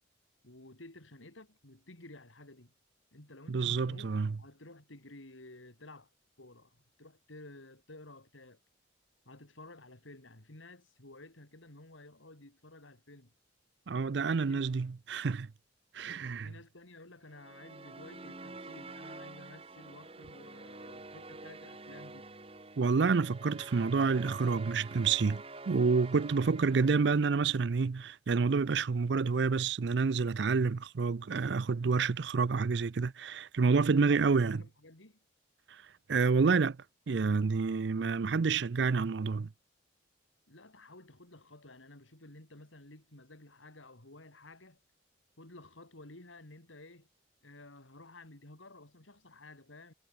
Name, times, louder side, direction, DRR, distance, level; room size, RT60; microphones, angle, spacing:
voice 1, 0.4-2.7 3.1-4.1 4.4-6.1 6.4-8.6 9.3-13.3 14.2-14.7 16.0-22.3 33.9-35.2 40.5-44.8 45.4-47.1 47.4-49.9, left 2 dB, 85° left, 3.6 m, -53 dB
voice 2, 3.5-4.4 13.9-15.5 15.9-16.5 22.8-34.6 36.1-36.8 37.1-39.5, right 4 dB, 65° right, 0.5 m, -28 dB
sound 1, 17.3-27.7, right 3 dB, 30° right, 1.9 m, -48 dB
head